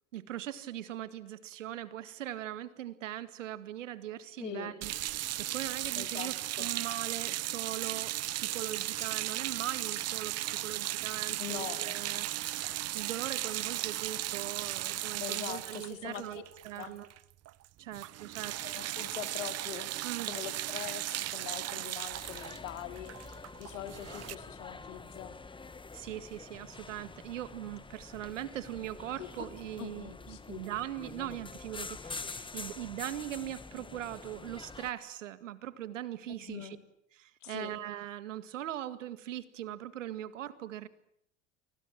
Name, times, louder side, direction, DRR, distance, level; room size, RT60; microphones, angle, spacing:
voice 1, 0.1-17.1 17.8-18.6 20.0-20.5 25.9-36.8 37.1-40.9, right 12 dB, 90° right, 12 dB, 2.0 m, -40 dB
voice 2, 4.4-4.7 5.9-6.7 11.4-12.0 15.2-16.4 16.7-17.0 18.4-19.9 20.2-25.4 29.2-29.5 29.8-30.6 36.4-36.7 37.4-37.7, left 10 dB, 85° left, 8 dB, 3.4 m, -43 dB
sound 1, 4.8-17.2 17.5-17.7 17.9-24.4, right 14 dB, 40° right, 1.0 m, -36 dB
sound 2, 22.0-34.9, left 4 dB, 15° left, 1.5 m, -46 dB
30.0 x 24.5 x 7.5 m, 0.72 s
hypercardioid pair, 90°, 37 cm